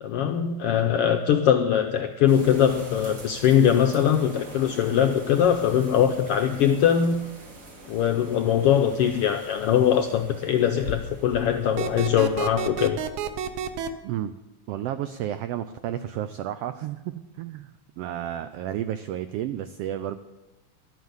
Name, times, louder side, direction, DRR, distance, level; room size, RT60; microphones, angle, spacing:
voice 1, 0.0-7.2 7.9-13.0, left 9 dB, 80° left, 6 dB, 1.3 m, -21 dB
sound 1, 2.3-12.4, equal, 40° right, 2.5 m, -43 dB
sound 2, 11.8-13.9, right 8 dB, 70° right, 1.5 m, -30 dB
voice 2, 14.0-14.3 14.7-17.7 18.0-20.2, right 11 dB, 90° right, 11 dB, 1.3 m, -32 dB
12.0 x 9.3 x 8.0 m, 1.1 s
omnidirectional pair, 3.4 m